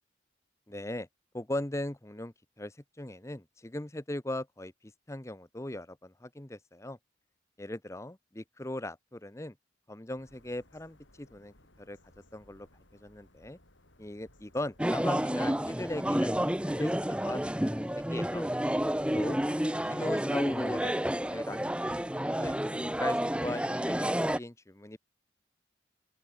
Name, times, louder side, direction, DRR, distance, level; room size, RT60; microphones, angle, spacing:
voice 1, 0.7-1.1 1.3-4.7 5.1-7.0 7.6-9.5 9.9-12.0 12.3-12.7 13.0-13.6 14.0-17.4 17.7-18.5 19.1-19.4 19.9-20.9 21.3-22.6 23.0-25.0, left 1 dB, 15° left, 0.9 m, -39 dB
sound 1, 10.2-19.5, left 1 dB, 80° left, 7.3 m, -62 dB
sound 2, 14.8-24.4, equal, 5° right, 1.3 m, -30 dB
open air
head